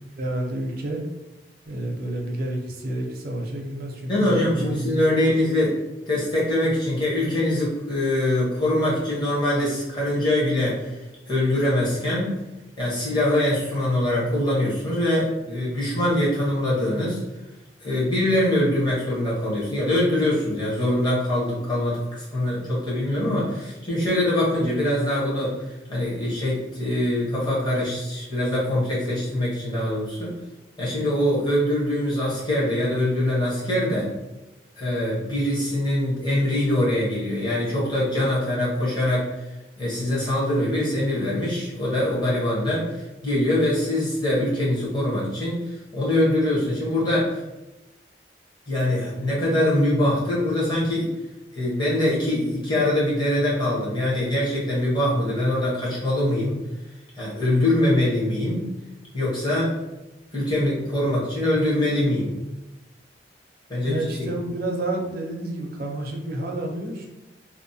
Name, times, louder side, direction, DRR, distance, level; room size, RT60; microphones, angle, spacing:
voice 1, 0.2-1.0 1.7-5.4 63.9-67.1, right 1 dB, 50° right, 1 dB, 0.5 m, -29 dB
voice 2, 4.1-5.7 6.1-11.0 11.3-12.4 12.8-17.2 17.8-25.5 25.9-30.3 30.8-34.1 34.8-39.3 39.8-47.4 48.7-51.1 51.5-56.6 57.2-58.7 59.1-59.7 60.3-62.3 63.7-64.3, left 1 dB, 25° left, -7 dB, 0.9 m, -23 dB
2.7 x 2.1 x 2.6 m, 1.0 s
head